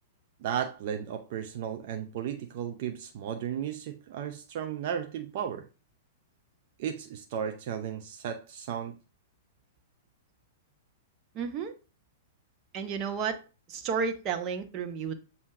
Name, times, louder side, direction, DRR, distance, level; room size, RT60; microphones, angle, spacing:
voice 1, 0.4-5.7 6.8-8.9, right 9 dB, 55° right, 0.6 m, -34 dB
voice 2, 11.3-11.7 12.7-13.4 13.7-15.1, right 6 dB, 35° right, 1.0 m, -32 dB
7.4 x 2.8 x 4.7 m
figure-of-eight pair, 105°, 0 cm